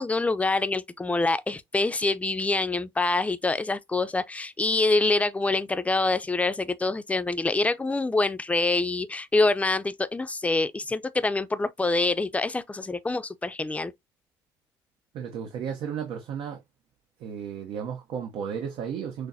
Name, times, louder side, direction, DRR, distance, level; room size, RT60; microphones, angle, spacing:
voice 1, 0.0-13.9, left 3 dB, 15° left, 0.5 m, -26 dB
voice 2, 15.1-16.6 17.2-19.3, right 7 dB, 75° right, 0.8 m, -34 dB
6.1 x 2.1 x 2.7 m
cardioid pair, 85°, 9 cm